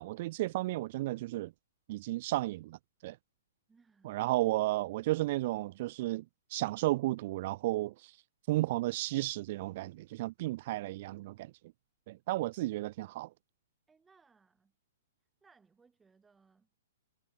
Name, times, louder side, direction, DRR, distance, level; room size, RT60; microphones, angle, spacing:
voice 1, 0.0-1.5 1.9-3.2 4.0-6.2 6.5-8.2 8.5-11.5 12.1-13.3, right 18 dB, 50° right, 0.4 m, -33 dB
voice 2, 3.7-4.4 13.9-14.8 15.4-16.8, right 5 dB, 10° right, 6.2 m, -66 dB
hypercardioid pair, 140°, 0 cm